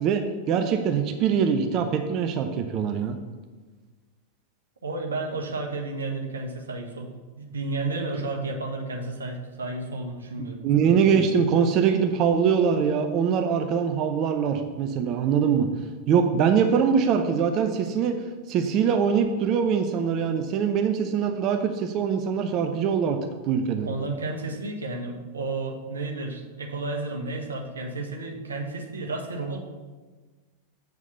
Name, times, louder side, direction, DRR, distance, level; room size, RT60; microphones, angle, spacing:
voice 1, 0.0-3.2 10.4-15.7 16.1-18.1 18.5-23.2 23.4-23.9, right 7 dB, 35° right, 6 dB, 0.7 m, -23 dB
voice 2, 4.8-7.1 7.4-10.6 23.8-29.6, right 3 dB, 70° right, 1 dB, 1.3 m, -32 dB
7.8 x 4.8 x 6.8 m, 1.3 s
figure-of-eight pair, 90°, 0 cm